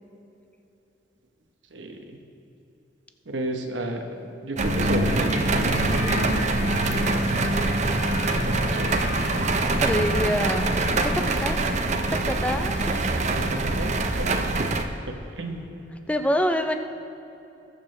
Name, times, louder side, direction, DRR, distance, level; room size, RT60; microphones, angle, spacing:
voice 1, 1.7-2.2 3.3-7.1 8.4-9.1 13.4-14.3 15.1-15.6, right 1 dB, 80° right, 4 dB, 1.0 m, -32 dB
sound 1, 4.6-11.3, left 2 dB, 40° left, 1.1 m, -34 dB
sound 2, 4.6-14.8, right 2 dB, 40° right, 0.6 m, -24 dB
voice 2, 9.8-11.6 12.1-13.0 16.1-16.8, equal, 5° left, 7 dB, 0.5 m, -26 dB
20.0 x 6.8 x 3.3 m, 2.9 s
head